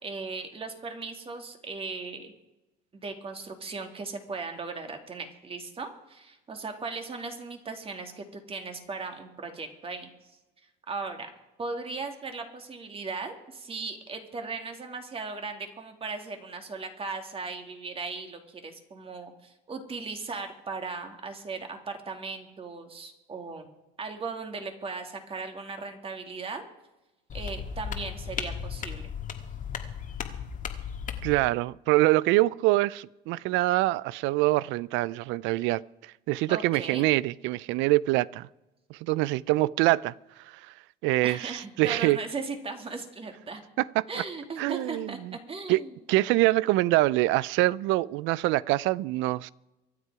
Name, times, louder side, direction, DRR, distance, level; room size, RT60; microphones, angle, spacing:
voice 1, 0.0-2.3 2.9-10.1 10.9-11.3 11.6-23.7 24.0-26.6 27.3-29.1 36.5-37.1 41.2-43.6 44.1-45.2 45.5-45.9, right 4 dB, 30° right, 2.4 m, -37 dB
sound 1, 27.3-31.4, left 7 dB, 40° left, 1.7 m, -36 dB
voice 2, 31.2-35.8 36.3-38.5 38.9-40.1 41.0-42.2 43.8-44.2 44.6-45.3 45.7-45.8 46.1-49.5, right 18 dB, 70° right, 0.5 m, -25 dB
24.5 x 8.3 x 4.8 m
cardioid pair, 115°, 20 cm